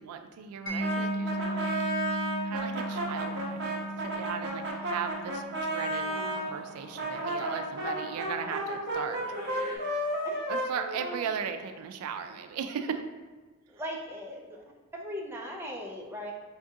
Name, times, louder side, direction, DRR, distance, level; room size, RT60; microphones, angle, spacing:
voice 1, 0.0-1.7 2.4-9.2 10.5-13.0, right 7 dB, 90° right, 8 dB, 0.3 m, -37 dB
Mallet percussion, 0.7-7.4, right 1 dB, 70° left, 0.7 m, -37 dB
Brass instrument, 0.8-6.4 6.9-11.7, right 1 dB, 50° right, 0.7 m, -33 dB
sound 1, 2.8-4.5 5.8-7.5 9.1-9.8, left 1 dB, 10° left, 1.2 m, -48 dB
voice 2, 6.0-6.6 10.2-10.4 13.7-14.6 14.9-16.3, equal, 10° right, -1 dB, 0.4 m, -39 dB
5.0 x 2.4 x 2.6 m, 1.3 s
head